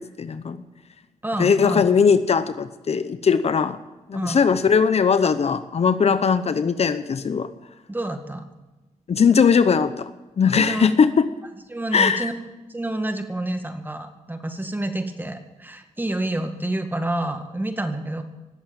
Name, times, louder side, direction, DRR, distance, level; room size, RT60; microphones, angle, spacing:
voice 1, 0.2-0.6 1.4-3.8 4.1-7.5 9.1-11.3 11.9-12.3, left 6 dB, 50° left, 12 dB, 0.8 m, -19 dB
voice 2, 1.2-1.9 4.1-4.4 7.9-8.4 10.5-10.9 11.7-12.3 12.7-18.2, right 1 dB, 15° right, 6 dB, 1.9 m, -28 dB
19.0 x 7.9 x 9.0 m, 1.1 s
cardioid pair, 80°, 13 cm